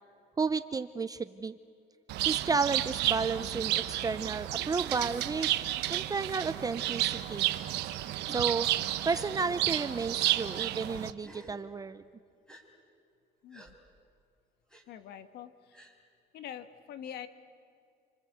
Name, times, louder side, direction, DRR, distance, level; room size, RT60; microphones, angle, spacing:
voice 1, 0.4-1.6 2.3-5.5 5.9-7.4 8.3-8.7 9.1-12.0, right 4 dB, 20° right, 12 dB, 0.7 m, -32 dB
Bird, 2.1-11.1, right 14 dB, 85° right, 1.2 m, -32 dB
Gasp, 4.8-5.0 5.8-6.0 6.8-7.2 8.0-8.4 9.1-9.3 10.2-10.4 11.2-11.6 12.5-12.6 13.5-13.7 14.7-14.8 15.7-15.9, right 2 dB, 5° left, 4.2 m, -52 dB
voice 2, 13.4-13.8 14.9-15.8 16.3-17.3, left 9 dB, 75° left, 10 dB, 1.6 m, -44 dB
30.0 x 24.5 x 8.1 m, 2.4 s
cardioid pair, 110°, 17 cm